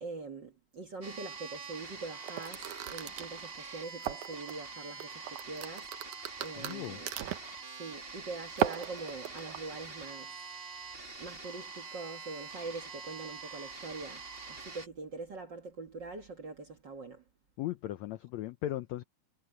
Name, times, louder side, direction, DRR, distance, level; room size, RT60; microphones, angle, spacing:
voice 1, 0.0-7.1 7.8-10.3 11.2-17.2, right 3 dB, 45° right, 1.6 m, -43 dB
sound 1, 1.0-14.9, right 4 dB, 20° right, 1.7 m, -45 dB
sound 2, 2.2-4.5 5.0-7.6 8.5-9.6, right 13 dB, 70° right, 2.2 m, -36 dB
voice 2, 6.6-7.0 17.6-19.0, left 14 dB, 80° left, 1.6 m, -37 dB
omnidirectional pair, 3.9 m